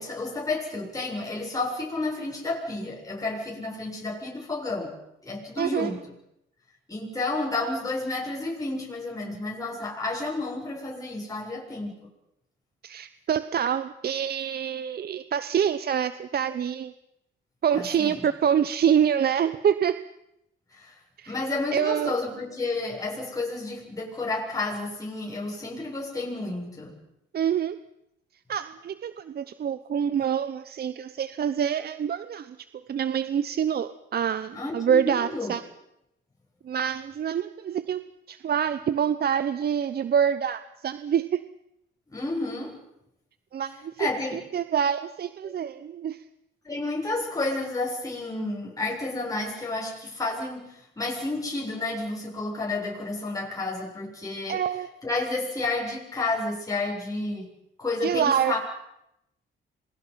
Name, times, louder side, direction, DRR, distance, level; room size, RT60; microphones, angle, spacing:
voice 1, 0.0-4.9 5.2-6.0 6.9-12.1 17.7-18.2 20.7-21.0 21.3-26.9 34.5-35.6 42.1-42.7 44.0-44.4 45.4-45.5 46.6-54.6 55.0-57.5 57.8-58.6, left 2 dB, 15° left, -2 dB, 7.6 m, -31 dB
voice 2, 5.6-5.9 12.8-16.9 17.6-20.0 21.2-21.3 21.7-22.1 27.3-27.8 28.5-32.6 32.9-35.6 36.6-38.0 38.3-41.4 43.5-43.9 44.5-46.2 54.5-54.9 58.0-58.6, right 8 dB, 50° right, 13 dB, 0.9 m, -26 dB
27.5 x 22.5 x 5.8 m, 0.83 s
cardioid pair, 90°, 20 cm